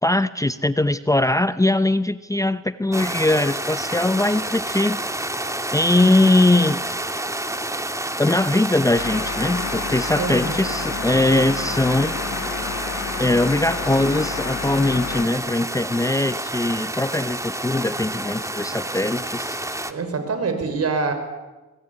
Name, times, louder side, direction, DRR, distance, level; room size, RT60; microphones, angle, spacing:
voice 1, 0.0-5.3 5.7-6.8 8.2-12.2 13.2-19.6, left 2 dB, 10° left, 13 dB, 0.8 m, -21 dB
sound 1, 2.9-19.9, right 1 dB, 10° right, 1.9 m, -29 dB
sound 2, 8.9-15.3, left 7 dB, 65° left, 2.4 m, -31 dB
voice 2, 10.2-10.5 19.9-21.1, right 4 dB, 55° right, 7 dB, 6.1 m, -25 dB
24.0 x 21.0 x 9.9 m, 1.1 s
cardioid pair, 85°, 29 cm